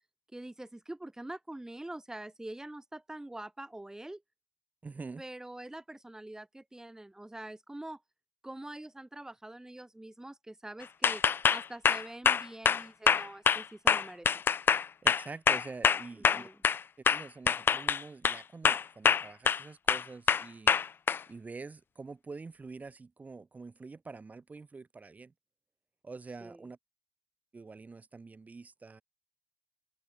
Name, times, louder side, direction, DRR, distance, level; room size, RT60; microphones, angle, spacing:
voice 1, 0.3-4.2 5.2-8.0 8.4-11.2 11.5-14.3 16.2-16.6 26.4-26.6, right 1 dB, 10° right, 6.2 m, -45 dB
voice 2, 4.8-5.2 15.0-16.5 17.1-20.7 21.3-25.3 26.0-26.8 27.5-29.0, right 4 dB, 25° right, 7.3 m, -46 dB
sound 1, 11.0-16.8 17.1-18.4 18.6-19.6 19.9-21.2, left 7 dB, 35° left, 0.6 m, -25 dB
hypercardioid pair, 60°, 6 cm